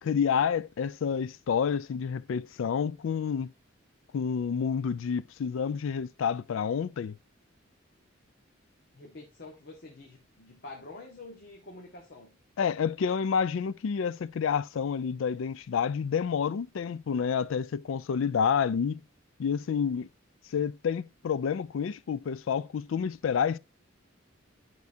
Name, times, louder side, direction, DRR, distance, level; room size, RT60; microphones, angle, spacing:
voice 1, 0.0-3.5 4.1-7.2 12.6-19.0 19.4-20.1 20.5-23.6, left 7 dB, 70° left, 0.4 m, -29 dB
voice 2, 8.9-12.4, left 2 dB, 55° left, 1.4 m, -47 dB
10.5 x 4.6 x 2.7 m
head